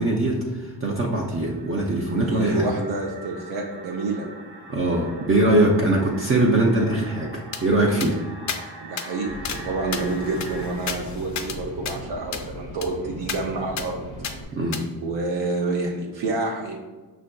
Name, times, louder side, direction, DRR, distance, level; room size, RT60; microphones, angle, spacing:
voice 1, 0.0-2.7 4.7-8.2 14.5-14.8, right 2 dB, 30° right, -2 dB, 0.4 m, -22 dB
sound 1, 0.7-10.7, right 2 dB, 60° right, 1.1 m, -43 dB
voice 2, 2.3-4.3 8.8-14.1 15.0-16.8, right 3 dB, 75° right, 0 dB, 0.6 m, -28 dB
sound 2, 7.5-7.6 8.0-8.1 8.5-8.6 9.0-9.1 9.4-9.6 9.9-11.6 11.8-12.0 12.3-12.5 12.8-12.9 13.3-13.4 13.8-13.9 14.2-14.3 14.7-14.8, left 7 dB, 40° left, 0.4 m, -32 dB
sound 3, 9.3-14.4, right 1 dB, 15° right, 0.8 m, -38 dB
5.7 x 2.5 x 2.2 m, 1.3 s
cardioid pair, 105°, 45 cm